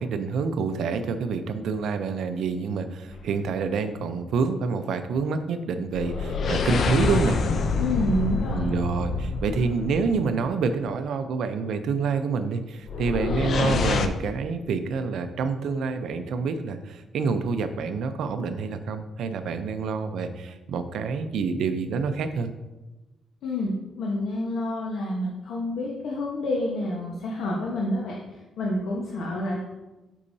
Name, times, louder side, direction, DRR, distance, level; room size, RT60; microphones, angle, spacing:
voice 1, 0.0-7.4 8.5-22.5, right 5 dB, 70° right, 8 dB, 0.5 m, -27 dB
sound 1, 3.1-3.5 5.9-10.5 12.9-14.1, left 4 dB, 50° left, 0.5 m, -26 dB
voice 2, 7.8-8.7 23.4-23.7 24.0-28.2 28.6-29.6, left 1 dB, 80° left, -3 dB, 1.1 m, -28 dB
8.3 x 5.5 x 2.7 m, 1.1 s
cardioid pair, 140°, 0 cm